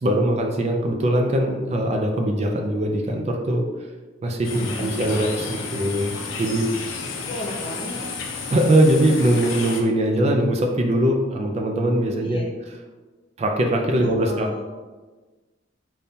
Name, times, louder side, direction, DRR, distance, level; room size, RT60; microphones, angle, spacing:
voice 1, 0.0-3.7 4.2-6.7 8.5-12.4 13.4-14.6, right 1 dB, 35° right, 2 dB, 0.4 m, -21 dB
sound 1, 4.4-9.8, left 4 dB, 90° left, 0.5 m, -32 dB
voice 2, 4.5-4.8 7.2-8.2 12.2-12.6 14.0-14.6, left 1 dB, 30° left, -1 dB, 0.6 m, -35 dB
5.2 x 2.2 x 2.7 m, 1.3 s
head